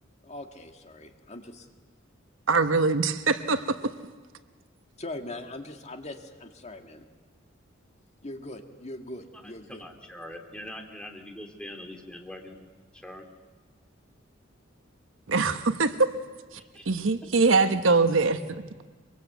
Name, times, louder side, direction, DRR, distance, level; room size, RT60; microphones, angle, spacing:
voice 1, 0.2-1.7 5.0-7.0 8.2-9.8, left 1 dB, 35° left, 5 dB, 1.9 m, -41 dB
voice 2, 2.5-3.8 15.3-16.2 16.5-16.6 16.9-18.4, right 3 dB, 70° right, 9 dB, 1.1 m, -23 dB
voice 3, 9.3-12.7 12.9-13.2 16.6-16.9, left 1 dB, 5° left, 3 dB, 2.7 m, -43 dB
24.0 x 23.5 x 8.1 m, 1.4 s
head